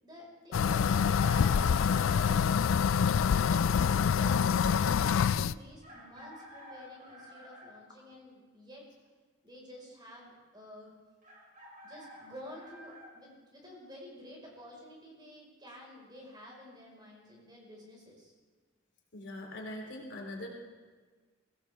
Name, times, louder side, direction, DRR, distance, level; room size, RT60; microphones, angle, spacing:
voice 1, 0.0-2.8 3.2-8.9 9.4-10.9 11.8-18.3, equal, 20° right, -2 dB, 5.1 m, -51 dB
sound 1, 0.5-5.6, left 7 dB, 75° left, 0.4 m, -26 dB
Chicken rooster, 0.6-2.6 4.2-4.3 5.8-7.7 11.2-13.1, equal, 40° right, 4.9 m, -48 dB
voice 2, 19.1-20.5, left 1 dB, 60° left, 0 dB, 3.3 m, -42 dB
23.0 x 16.5 x 3.6 m, 1.4 s
head